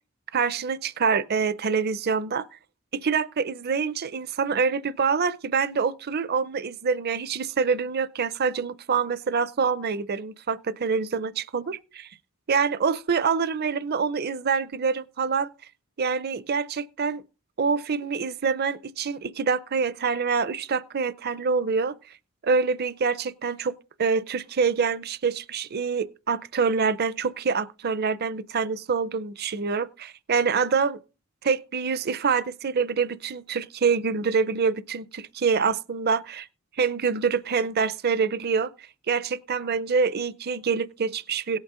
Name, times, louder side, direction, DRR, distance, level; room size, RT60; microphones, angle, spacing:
voice 1, 0.3-2.5 2.9-12.1 12.5-15.5 16.0-17.2 17.6-21.9 22.4-23.7 24.0-31.0 31.4-36.5 36.8-38.7 39.1-41.6, right 5 dB, 45° right, 0.6 m, -26 dB
17.5 x 8.2 x 3.7 m
head